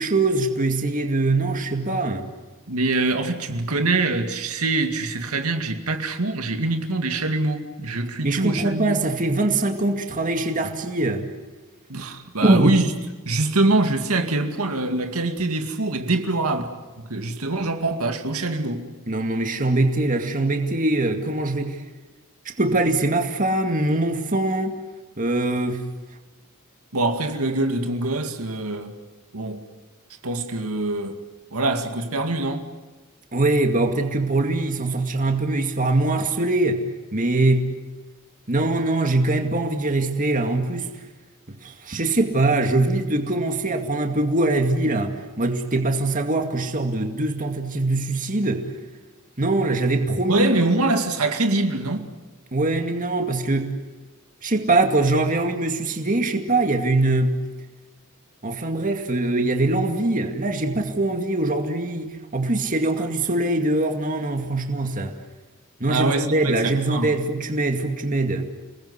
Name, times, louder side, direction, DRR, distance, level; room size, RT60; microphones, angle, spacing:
voice 1, 0.0-2.3 8.2-11.3 12.4-12.8 19.1-21.8 22.5-24.8 25.2-25.8 33.3-36.9 37.1-37.7 38.5-40.9 41.5-48.7 49.4-50.5 52.5-53.7 54.4-57.4 58.4-65.2 65.8-68.4, right 2 dB, 40° right, 2.3 m, -22 dB
voice 2, 2.7-9.0 11.9-12.8 13.3-18.9 26.9-28.9 29.3-29.6 30.2-31.2 31.5-32.7 50.3-52.1 65.9-67.2, right 2 dB, 90° right, 2.3 m, -24 dB
29.5 x 20.0 x 8.2 m
head